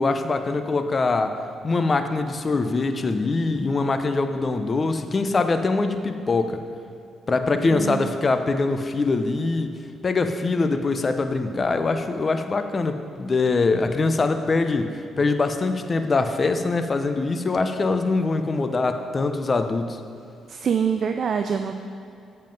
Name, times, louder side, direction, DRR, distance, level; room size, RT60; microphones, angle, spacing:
voice 1, 0.0-6.6 7.3-9.7 10.0-20.0, left 3 dB, 35° left, 8 dB, 0.6 m, -23 dB
voice 2, 7.7-8.1 20.5-21.7, right 7 dB, 55° right, 6 dB, 0.4 m, -25 dB
7.5 x 7.5 x 5.3 m, 2.7 s
cardioid pair, 90°, 0 cm